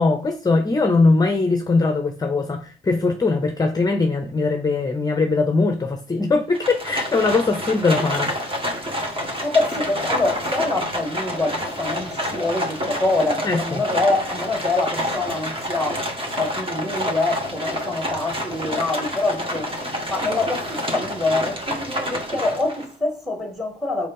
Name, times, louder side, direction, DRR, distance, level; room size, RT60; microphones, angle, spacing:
voice 1, 0.0-8.3 13.4-13.8, left 3 dB, 20° left, 0.7 m, -21 dB
Livestock farm animals working animals, 6.5-22.9, equal, 25° right, 1.8 m, -28 dB
voice 2, 9.4-19.7 20.1-24.1, left 2 dB, ahead, 1.7 m, -25 dB
4.5 x 4.0 x 5.5 m
cardioid pair, 90°, 20 cm